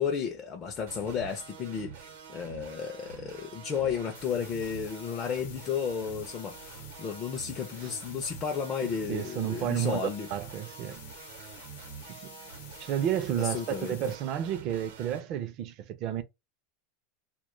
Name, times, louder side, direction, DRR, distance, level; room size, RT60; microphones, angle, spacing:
voice 1, 0.0-10.3 13.4-14.0, left 7 dB, 25° left, 0.4 m, -33 dB
sound 1, 0.9-15.2, right 7 dB, 80° right, 0.8 m, -47 dB
sound 2, 4.1-14.1, left 8 dB, 80° left, 0.7 m, -50 dB
voice 2, 9.1-11.0 11.4-11.5 12.1-12.5 12.8-16.2, right 10 dB, 40° right, 0.4 m, -32 dB
2.1 x 2.1 x 3.0 m
supercardioid pair, 155°, 0 cm